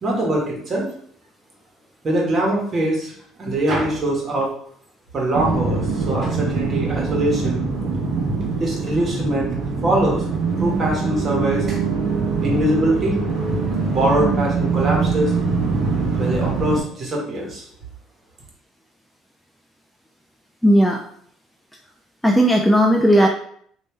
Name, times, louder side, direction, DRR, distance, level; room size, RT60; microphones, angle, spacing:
voice 1, 0.0-0.9 2.0-3.1 3.4-4.5 5.1-7.6 8.6-10.2 10.6-11.8 12.4-13.2 13.8-15.3 16.2-17.7, right 1 dB, 35° right, -2 dB, 1.4 m, -22 dB
sound 1, 5.3-16.8, right 4 dB, 55° right, 0.9 m, -23 dB
voice 2, 20.6-21.0 22.2-23.3, equal, ahead, 2 dB, 0.4 m, -15 dB
3.2 x 2.7 x 3.2 m, 0.62 s
supercardioid pair, 95°, 0 cm